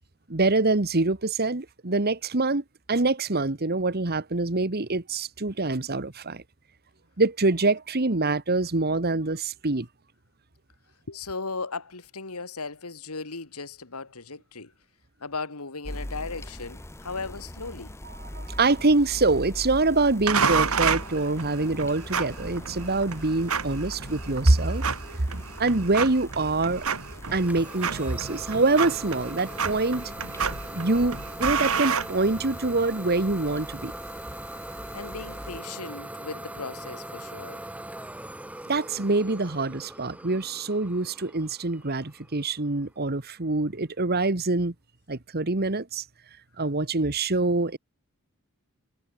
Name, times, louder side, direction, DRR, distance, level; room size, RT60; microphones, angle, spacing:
voice 1, 0.3-6.4 7.2-9.9 18.3-24.8 25.6-26.8 27.3-30.1 30.7-33.9 38.7-44.7 45.1-46.0 46.6-47.8, right 3 dB, 45° right, 1.4 m, -25 dB
voice 2, 11.1-14.7 15.2-18.0 34.9-37.7, left 4 dB, 80° left, 2.4 m, -37 dB
sound 1, 15.8-35.6, left 1 dB, 10° left, 1.1 m, -41 dB
sound 2, 20.3-32.8, right 6 dB, 70° right, 2.6 m, -30 dB
Idling / Domestic sounds home sounds, 27.3-42.8, right 1 dB, 5° right, 0.8 m, -41 dB
head